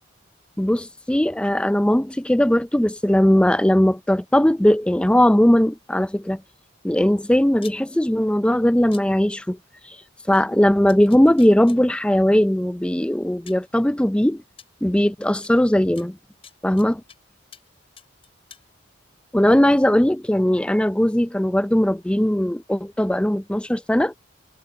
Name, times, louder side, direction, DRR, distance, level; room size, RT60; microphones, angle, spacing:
voice 1, 0.6-6.4 6.8-9.6 10.3-14.4 14.8-16.2 16.6-17.0 19.3-24.2, left 1 dB, 5° left, 0.4 m, -19 dB
sound 1, 7.6-7.8 8.9-9.0 10.3-10.4 10.9-11.8 12.8-12.9 13.5-13.7 14.6-14.7 15.4-15.5 16.0-17.2 17.5-17.7 18.0-18.6, left 7 dB, 30° left, 6.2 m, -45 dB
head